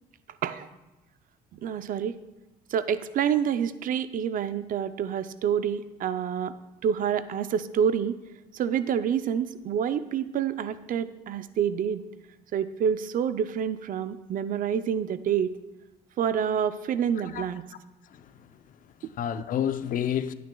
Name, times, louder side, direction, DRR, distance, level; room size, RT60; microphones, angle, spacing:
voice 1, 1.6-2.2 2.7-6.5 6.8-8.2 8.5-12.0 12.5-15.5 16.2-17.6, right 8 dB, 55° right, 0.5 m, -27 dB
voice 2, 17.2-17.5 18.1-20.3, left 9 dB, 55° left, 0.6 m, -31 dB
16.5 x 9.3 x 2.3 m
cardioid pair, 110°, 17 cm